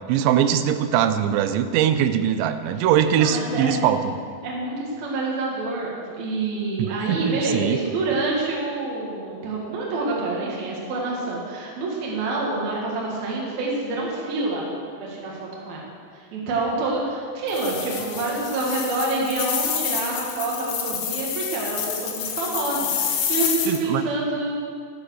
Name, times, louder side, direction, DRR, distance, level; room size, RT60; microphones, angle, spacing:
voice 1, 0.1-4.1 6.8-7.8 23.7-24.0, right 9 dB, 85° right, 10 dB, 2.9 m, -21 dB
voice 2, 3.1-4.0 4.4-14.7 15.0-15.8 16.1-24.5, right 2 dB, 60° right, -4 dB, 3.3 m, -27 dB
sound 1, 17.5-23.8, left 8 dB, 85° left, 3.5 m, -28 dB
13.0 x 7.8 x 6.4 m, 2.2 s
omnidirectional pair, 5.1 m